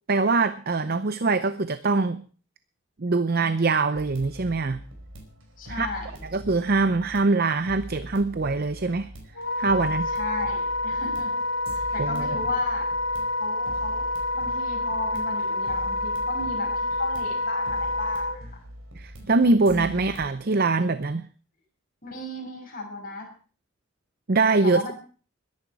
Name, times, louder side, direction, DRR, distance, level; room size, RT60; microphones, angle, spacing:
voice 1, 0.1-2.2 3.0-4.8 5.7-5.9 6.3-9.1 9.6-10.1 12.0-12.4 19.0-21.3 24.3-24.9, right 3 dB, 45° right, 12 dB, 0.7 m, -23 dB
sound 1, 3.9-20.3, equal, 80° right, 4.7 m, -43 dB
voice 2, 5.6-6.2 10.1-12.9 13.4-14.1 14.3-18.6 19.6-20.2 22.0-23.3 24.6-24.9, left 2 dB, 45° left, 1 dB, 6.3 m, -35 dB
Wind instrument woodwind instrument, 9.4-18.4, left 2 dB, 80° left, 2.2 m, -28 dB
21.5 x 11.0 x 4.8 m, 0.41 s
head